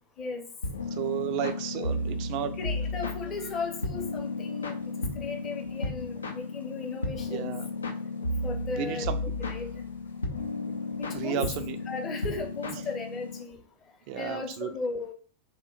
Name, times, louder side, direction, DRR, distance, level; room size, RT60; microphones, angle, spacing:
sound 1, 0.6-13.4, left 2 dB, 75° left, 0.5 m, -34 dB
voice 1, 1.0-2.6 7.3-7.7 8.8-9.2 11.1-11.8 14.1-14.7, right 9 dB, 45° right, 9 dB, 0.4 m, -32 dB
voice 2, 2.6-4.8 5.1-7.5 8.4-9.1 9.4-9.9 11.0-11.4 11.9-13.6 14.1-15.1, left 4 dB, 25° left, 4 dB, 0.7 m, -36 dB
2.8 x 2.2 x 3.7 m, 0.44 s
figure-of-eight pair, 90°, 0 cm